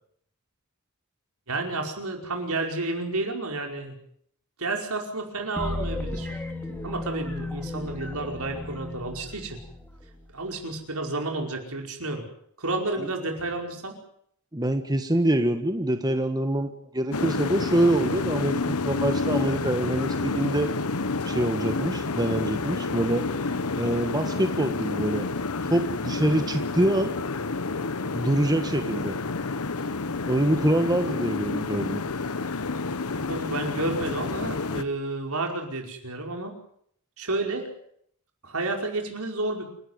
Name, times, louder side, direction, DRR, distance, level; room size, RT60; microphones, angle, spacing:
voice 1, 1.5-4.0 4.6-6.3 6.8-9.6 10.3-12.2 12.6-14.0 33.3-36.5 37.2-37.7 38.4-39.7, right 2 dB, 75° right, 3 dB, 5.2 m, -31 dB
sound 1, 5.6-10.3, left 2 dB, 10° left, 2.7 m, -34 dB
voice 2, 14.5-20.8 21.2-23.3 23.8-25.3 25.7-27.1 28.1-29.2 30.3-32.0, right 1 dB, 20° right, 7 dB, 1.5 m, -25 dB
sound 2, 17.1-34.8, left 3 dB, 80° left, 1.1 m, -29 dB
28.5 x 12.5 x 9.6 m, 0.68 s
head